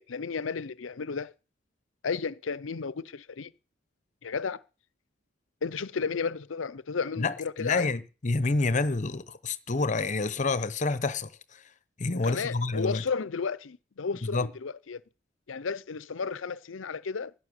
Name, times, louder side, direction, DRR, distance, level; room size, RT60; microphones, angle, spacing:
voice 1, 0.0-1.3 2.0-3.5 4.2-4.6 5.6-7.9 12.1-15.0 15.5-17.3, left 5 dB, 85° left, 0.6 m, -33 dB
voice 2, 7.2-11.3 12.0-13.0 14.2-14.5, left 3 dB, 40° left, 0.9 m, -28 dB
11.5 x 7.9 x 9.7 m
head